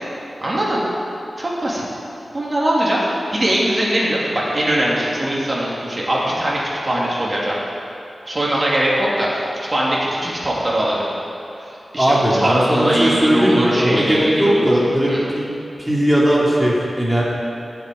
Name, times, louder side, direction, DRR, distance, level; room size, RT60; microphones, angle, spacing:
voice 1, 0.4-0.8 1.4-1.8 2.3-3.1 3.3-6.6 6.8-7.5 8.3-9.4 9.7-11.1 11.7-14.7 15.1-15.2, right 1 dB, 30° right, -5 dB, 3.0 m, -21 dB
voice 2, 12.0-15.5 15.8-17.2, equal, ahead, -6 dB, 2.8 m, -18 dB
14.5 x 8.1 x 9.5 m, 2.7 s
wide cardioid pair, 115°, 0 cm